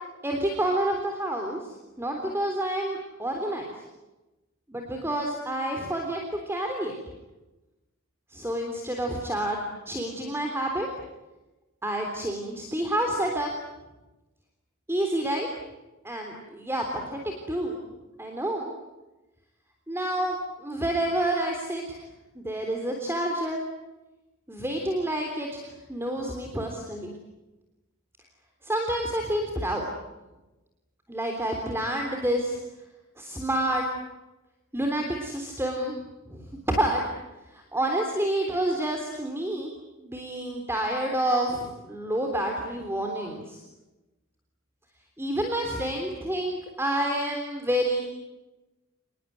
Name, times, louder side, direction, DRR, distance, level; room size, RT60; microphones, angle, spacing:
voice 1, 0.2-1.7 2.0-3.7 4.7-6.2 6.5-7.0 8.3-10.9 11.8-13.5 14.9-15.5 16.0-17.8 18.2-18.7 19.9-22.0 22.4-23.6 24.5-27.1 28.6-29.8 31.1-32.6 33.2-33.8 34.7-36.0 36.3-37.0 37.5-39.7 40.0-43.6 45.2-48.0, right 1 dB, 10° right, 2 dB, 3.6 m, -29 dB
28.5 x 21.0 x 9.5 m, 1.0 s
head